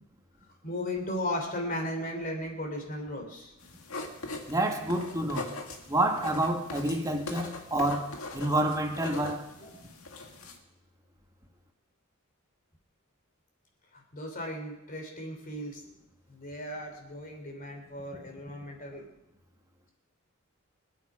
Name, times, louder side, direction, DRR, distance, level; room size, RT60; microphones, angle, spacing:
voice 1, 0.6-3.5 9.6-9.7 13.9-15.8 16.3-19.1, left 1 dB, 40° left, 2 dB, 3.5 m, -36 dB
sound 1, 3.6-10.6, left 2 dB, 85° left, 2.2 m, -41 dB
voice 2, 4.5-5.5 5.9-9.5, right 1 dB, 15° right, 3 dB, 1.9 m, -28 dB
25.5 x 9.3 x 5.0 m, 0.91 s
head